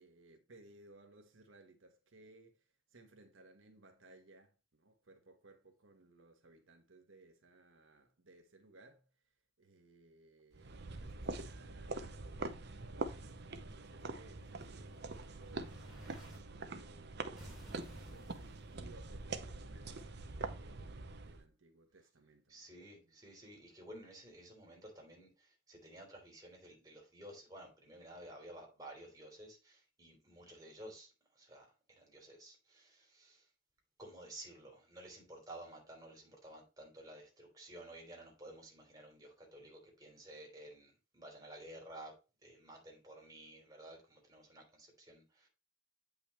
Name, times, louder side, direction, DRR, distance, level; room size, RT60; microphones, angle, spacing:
voice 1, 0.0-15.9 16.4-17.3 18.1-20.1 20.5-22.7 23.0-23.2, right 2 dB, 80° right, 1.3 m, -62 dB
sound 1, 10.5-21.4, right 3 dB, 55° right, 0.8 m, -44 dB
Explosion, 13.9-16.4 17.4-19.4, equal, 5° right, 3.5 m, -57 dB
voice 2, 22.5-33.5 34.0-42.2 42.4-45.5, right 1 dB, 20° right, 3.3 m, -53 dB
8.6 x 5.5 x 3.1 m
head